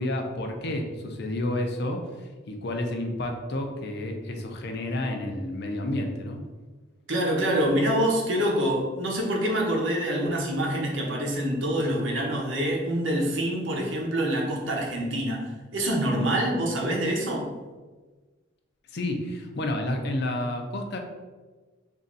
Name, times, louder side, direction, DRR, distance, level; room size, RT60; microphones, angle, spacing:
voice 1, 0.0-6.4 18.9-21.0, left 1 dB, 60° left, 4 dB, 0.5 m, -30 dB
voice 2, 7.1-15.5 15.7-17.5, right 1 dB, 65° right, -1 dB, 0.9 m, -26 dB
3.1 x 2.6 x 3.9 m, 1.3 s
head